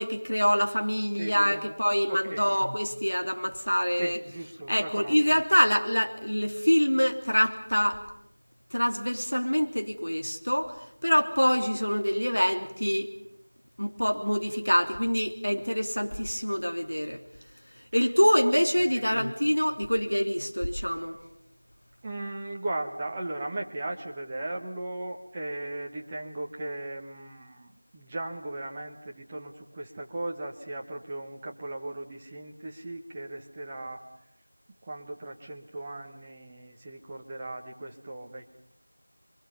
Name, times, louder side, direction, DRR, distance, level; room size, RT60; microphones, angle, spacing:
voice 1, 0.0-4.2 4.7-8.0 8.7-10.7 11.0-13.1 13.8-17.2 17.9-21.2, equal, 80° left, 4 dB, 3.2 m, -25 dB
voice 2, 1.2-1.7 2.1-2.5 4.0-5.2 18.9-19.3 22.0-34.0 34.8-38.5, right 2 dB, 10° right, -1 dB, 0.9 m, -37 dB
28.0 x 24.0 x 5.5 m, 0.75 s
figure-of-eight pair, 175°, 0 cm